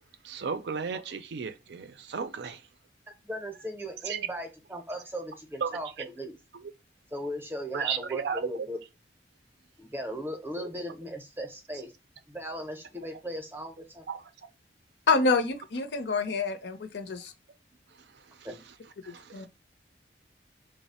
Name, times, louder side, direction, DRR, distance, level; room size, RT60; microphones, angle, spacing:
voice 1, 0.2-2.6 4.0-4.3 5.6-6.1 6.5-6.6 7.7-8.7 10.6-10.7 14.1-14.3 18.0-18.5 19.0-19.5, right 6 dB, 65° right, 0.4 m, -34 dB
voice 2, 3.2-6.4 7.1-8.8 9.8-11.9 12.3-14.1 18.4-18.6, equal, 10° right, 0.6 m, -37 dB
voice 3, 15.1-17.3 19.3-19.5, left 4 dB, 70° left, 0.5 m, -27 dB
3.1 x 2.0 x 4.1 m
head